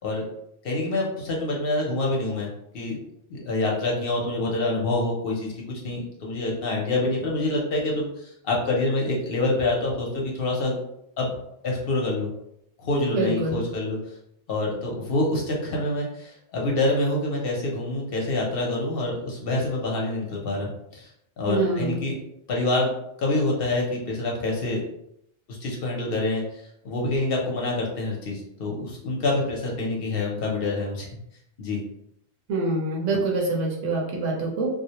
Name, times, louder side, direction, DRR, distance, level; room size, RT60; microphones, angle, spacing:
voice 1, 0.6-3.0 3.3-5.5 5.8-10.8 11.2-11.3 11.6-12.3 12.8-14.0 14.5-21.1 21.4-22.1 22.5-22.9 23.2-24.8 25.5-26.4 26.8-31.1 31.6-31.8, left 2 dB, 60° left, -2 dB, 0.7 m, -26 dB
voice 2, 13.1-13.6 21.5-22.0 32.5-34.7, right 2 dB, 80° right, -2 dB, 1.0 m, -25 dB
2.4 x 2.0 x 2.8 m, 0.78 s
omnidirectional pair, 1.2 m